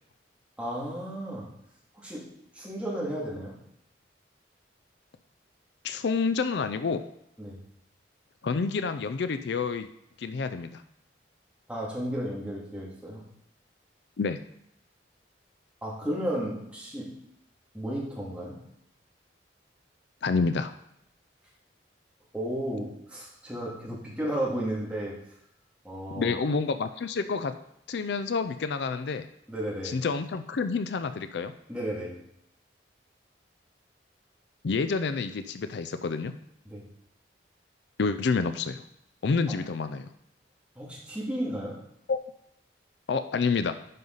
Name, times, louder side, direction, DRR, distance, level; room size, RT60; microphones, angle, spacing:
voice 1, 0.6-1.5 1.9-2.2 2.5-3.6 7.4-7.6 11.7-13.2 15.8-17.1 17.7-18.6 22.3-25.2 25.8-26.3 29.5-30.0 31.7-32.2 36.7-36.8 40.8-41.8, right 1 dB, 5° right, -5 dB, 2.3 m, -33 dB
voice 2, 5.8-7.0 8.4-9.9 10.2-10.8 14.2-14.4 20.2-20.7 26.1-27.5 27.9-29.3 29.8-31.5 34.6-36.3 38.0-38.8 39.2-40.1 42.1-42.2 43.1-43.7, left 4 dB, 65° left, 10 dB, 0.4 m, -28 dB
10.5 x 5.5 x 4.0 m, 0.79 s
head